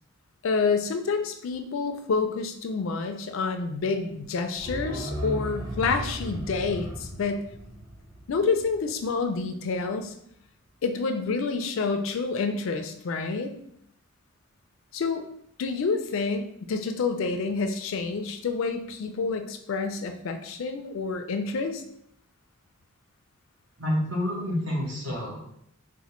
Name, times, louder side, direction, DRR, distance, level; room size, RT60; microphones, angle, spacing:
voice 1, 0.4-7.4 8.3-10.1 10.8-13.5 14.9-15.2 15.6-21.8, left 4 dB, 60° left, 7 dB, 0.4 m, -28 dB
sound 1, 4.6-9.3 9.6-9.7, right 1 dB, 15° right, 0.8 m, -36 dB
voice 2, 23.8-25.5, left 1 dB, 60° right, -3 dB, 1.1 m, -29 dB
4.1 x 2.1 x 3.0 m, 0.70 s
head